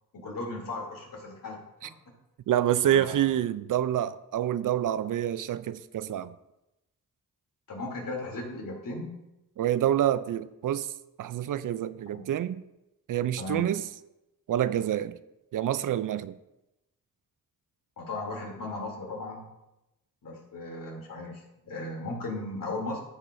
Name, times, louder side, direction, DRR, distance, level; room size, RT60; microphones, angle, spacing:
voice 1, 0.1-1.6 2.9-3.4 7.7-9.2 12.1-12.3 13.4-13.6 18.0-19.5 20.2-23.0, left 2 dB, 65° left, -2 dB, 3.0 m, -36 dB
voice 2, 2.5-6.3 9.6-10.9 11.2-12.6 13.1-13.8 14.5-15.2 15.5-16.3, right 11 dB, 60° right, 15 dB, 0.4 m, -27 dB
14.0 x 5.3 x 2.6 m, 0.92 s
cardioid pair, 60°, 36 cm